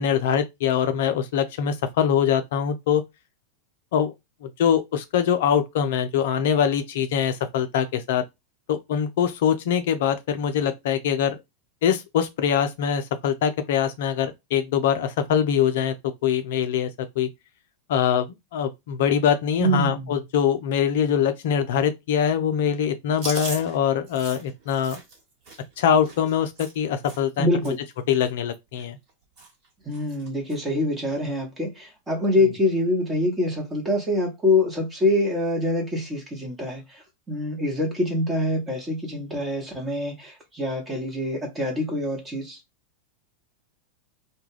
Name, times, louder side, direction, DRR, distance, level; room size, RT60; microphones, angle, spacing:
voice 1, 0.0-3.0 3.9-4.1 4.4-8.2 8.7-11.4 11.8-15.9 16.2-16.9 17.2-17.3 17.9-18.3 18.5-25.0 25.8-27.7 28.1-29.0, left 8 dB, 60° left, 0.4 m, -23 dB
voice 2, 19.6-20.1 27.4-27.8 29.9-42.6, left 1 dB, 15° right, 1.0 m, -25 dB
Chewing mastication, 23.1-27.4 27.6-27.9 28.2-29.1 29.4-29.7 29.9-30.6 31.0-31.2 32.2-32.6, right 3 dB, 45° right, 1.3 m, -39 dB
2.2 x 2.2 x 3.2 m
figure-of-eight pair, 95°, 0 cm